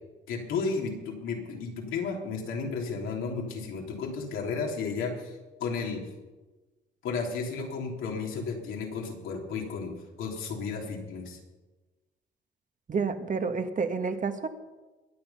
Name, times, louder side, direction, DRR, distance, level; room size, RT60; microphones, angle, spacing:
voice 1, 0.3-6.0 7.0-9.9 10.2-11.4, left 4 dB, 90° left, 0 dB, 3.5 m, -33 dB
voice 2, 12.9-14.5, right 5 dB, 40° right, 8 dB, 1.4 m, -29 dB
21.5 x 8.0 x 5.7 m, 1.2 s
cardioid pair, 90°, 20 cm